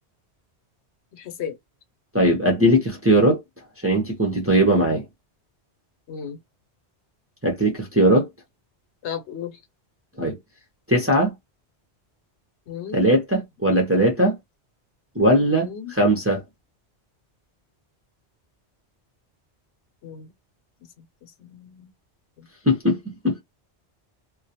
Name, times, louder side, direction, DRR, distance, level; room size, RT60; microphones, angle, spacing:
voice 1, 1.1-1.6 6.1-6.4 9.0-9.6 12.7-13.0 15.5-15.9 20.0-20.3 21.2-21.9 22.4-22.5, left 8 dB, 80° left, 0.9 m, -35 dB
voice 2, 2.1-3.4 3.8-5.0 7.4-8.3 10.2-10.4 10.9-11.3 12.9-14.3 15.1-16.4 22.7-23.4, right 1 dB, 15° right, 0.5 m, -19 dB
2.4 x 2.1 x 2.7 m
omnidirectional pair, 1.2 m